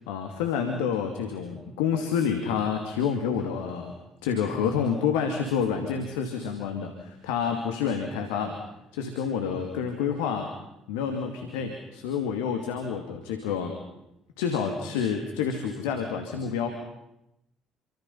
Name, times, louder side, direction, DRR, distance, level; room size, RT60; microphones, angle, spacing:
voice 1, 0.1-3.9 4.2-8.6 8.9-10.5 10.9-13.8 14.4-16.7, left 7 dB, 75° left, 4 dB, 2.5 m, -28 dB
28.5 x 25.0 x 5.7 m, 0.86 s
hypercardioid pair, 55°, 0 cm